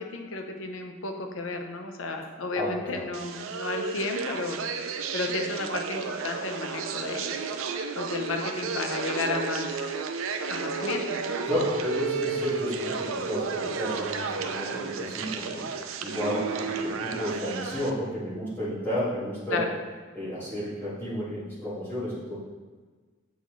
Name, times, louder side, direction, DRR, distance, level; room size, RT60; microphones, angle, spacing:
voice 1, 0.0-4.6 5.1-7.3 7.9-9.9 10.5-11.4 19.5-19.7, left 3 dB, 85° left, 4 dB, 0.7 m, -33 dB
voice 2, 2.6-3.0 11.5-15.7 16.0-19.6 20.1-22.4, left 1 dB, 10° left, -11 dB, 1.7 m, -32 dB
sound 1, 3.1-17.9, right 5 dB, 90° right, 0.5 m, -32 dB
8.1 x 3.9 x 3.1 m, 1.4 s
head